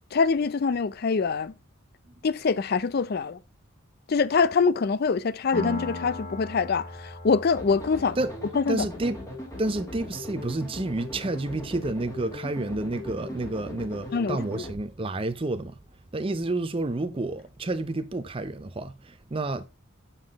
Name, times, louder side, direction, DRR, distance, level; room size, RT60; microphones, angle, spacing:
voice 1, 0.1-1.5 2.2-3.4 4.1-8.2 8.6-8.9 14.1-14.7, left 5 dB, 50° left, 0.4 m, -24 dB
Piano, 5.5-12.9, left 2 dB, 30° left, 1.8 m, -41 dB
sound 1, 7.6-14.7, left 1 dB, 15° left, 1.8 m, -39 dB
voice 2, 8.7-9.2 9.6-15.7 16.1-19.7, right 2 dB, 25° right, 0.5 m, -30 dB
7.1 x 5.7 x 3.5 m
head